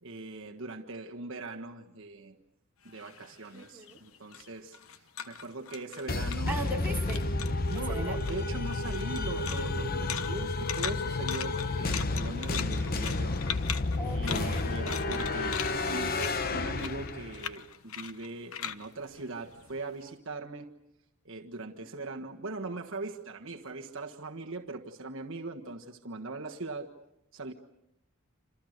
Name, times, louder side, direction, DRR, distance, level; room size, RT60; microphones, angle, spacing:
voice 1, 0.0-2.4 2.8-6.7 7.7-13.4 14.0-20.7 21.2-26.9 27.3-27.5, right 2 dB, 60° right, 2 dB, 1.5 m, -40 dB
sound 1, 2.9-6.8 7.1-7.8 8.2-20.0, left 9 dB, 75° left, 1.1 m, -40 dB
voice 2, 3.5-4.0 6.5-7.3 7.7-8.2 14.0-14.7, right 1 dB, 10° right, -2 dB, 4.1 m, -38 dB
sound 2, 6.1-17.5, left 2 dB, 45° left, 1.0 m, -31 dB
28.0 x 27.5 x 6.6 m, 0.86 s
head